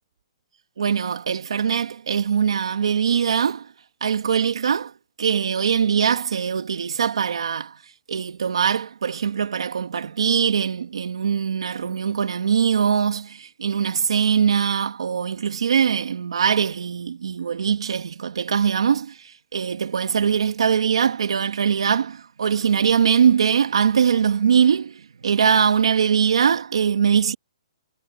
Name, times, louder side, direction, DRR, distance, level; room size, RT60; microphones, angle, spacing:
voice 1, 0.8-3.7 4.0-4.9 5.2-7.8 8.1-27.3, right 7 dB, 75° right, 1.7 m, -22 dB
hypercardioid pair, 180°, 3 cm